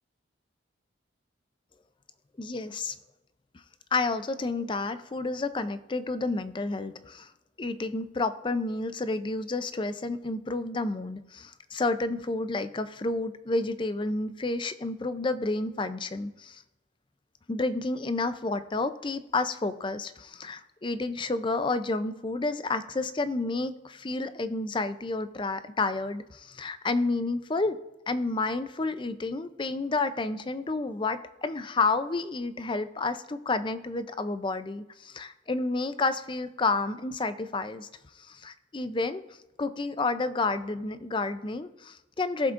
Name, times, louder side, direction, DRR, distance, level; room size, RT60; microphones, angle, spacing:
voice 1, 2.4-3.0 3.9-7.3 7.6-16.6 17.5-27.8 28.1-37.9 38.3-39.2 39.6-42.5, left 3 dB, 25° left, 11 dB, 0.5 m, -30 dB
18.0 x 7.1 x 2.5 m, 0.98 s
head